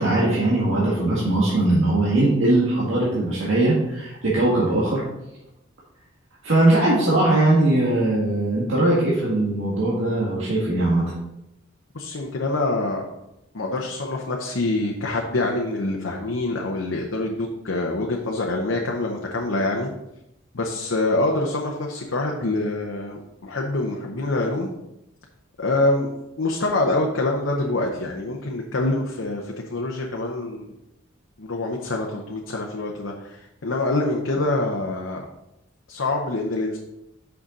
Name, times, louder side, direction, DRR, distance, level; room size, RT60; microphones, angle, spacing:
voice 1, 0.0-5.0 6.4-11.0, right 2 dB, 80° right, -7 dB, 1.7 m, -20 dB
voice 2, 11.9-13.0 13.5-19.9 20.5-24.7 25.6-30.8 31.4-35.2 35.9-36.8, left 2 dB, 75° left, 0 dB, 0.8 m, -25 dB
6.3 x 5.8 x 4.0 m, 0.87 s
head